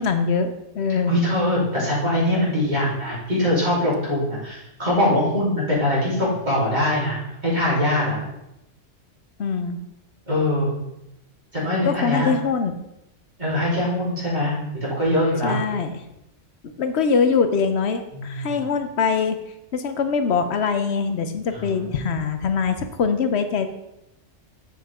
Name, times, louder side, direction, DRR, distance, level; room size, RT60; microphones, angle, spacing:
voice 1, 0.0-1.1 9.4-9.8 11.8-12.8 15.4-16.0 16.8-19.4 19.7-23.7, left 5 dB, 70° left, 8 dB, 1.0 m, -23 dB
voice 2, 1.1-8.2 10.3-10.7 11.5-12.3 13.4-14.5 14.8-15.6 18.1-18.5 21.5-21.7 22.0-22.2, left 1 dB, 40° right, -7 dB, 3.6 m, -22 dB
7.5 x 7.1 x 3.6 m, 0.87 s
omnidirectional pair, 1.2 m